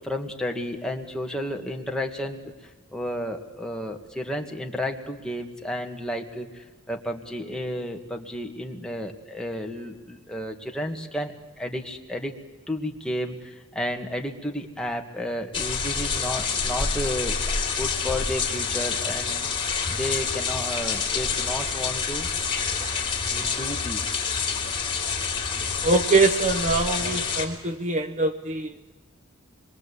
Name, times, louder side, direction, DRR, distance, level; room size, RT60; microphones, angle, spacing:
voice 1, 0.0-2.5 2.9-12.4 12.7-17.4 17.8-19.5 19.9-22.3 23.3-24.1 27.0-27.2, left 1 dB, 5° left, 2 dB, 2.0 m, -32 dB
sound 1, 15.5-27.5, left 5 dB, 25° left, 3.6 m, -27 dB
voice 2, 25.8-28.9, right 3 dB, 35° right, 10 dB, 0.9 m, -23 dB
25.5 x 23.0 x 8.4 m, 1.2 s
head